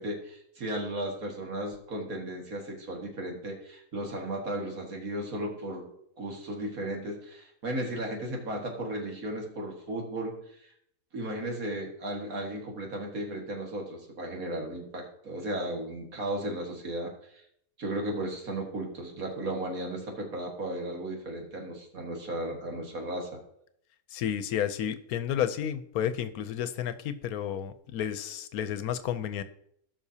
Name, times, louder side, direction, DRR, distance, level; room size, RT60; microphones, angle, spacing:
voice 1, 0.0-5.9 6.2-10.3 11.1-17.1 17.8-23.3, right 1 dB, 70° right, 0 dB, 2.3 m, -35 dB
voice 2, 24.1-29.4, left 9 dB, 90° left, 12 dB, 1.2 m, -31 dB
17.0 x 5.9 x 2.8 m, 0.70 s
omnidirectional pair, 1.5 m